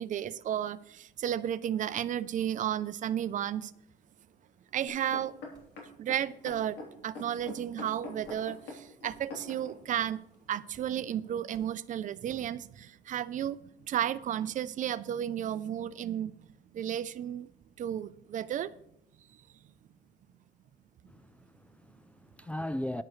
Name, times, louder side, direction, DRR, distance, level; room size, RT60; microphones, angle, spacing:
voice 1, 0.0-3.7 4.7-5.3 6.0-10.2 10.5-13.6 13.9-16.3 16.7-17.5 17.8-18.7, right 10 dB, 50° right, 0.5 m, -33 dB
sound 1, 4.9-9.8 10.4-10.5, left 3 dB, 80° left, 3.3 m, -44 dB
sound 2, 5.5-5.8 6.5-6.7 7.4-7.6 8.2-8.5 9.1-9.2 9.9-10.2 10.7-10.9 11.5-11.8 12.3-12.5, right 2 dB, 25° right, 4.0 m, -60 dB
voice 2, 21.1-23.0, left 1 dB, 10° left, 0.3 m, -38 dB
13.0 x 10.5 x 3.2 m
cardioid pair, 110°, 17 cm